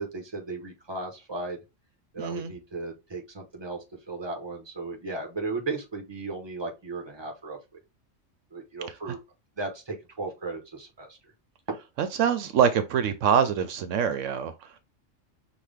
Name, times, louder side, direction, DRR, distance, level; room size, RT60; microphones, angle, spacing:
voice 1, 0.0-1.6 2.1-7.6 8.5-9.2 9.6-11.2, right 3 dB, 20° right, 1.2 m, -35 dB
voice 2, 2.2-2.5 9.1-9.2 12.0-14.5, right 8 dB, 80° right, 0.9 m, -24 dB
6.0 x 2.4 x 3.4 m
omnidirectional pair, 1.3 m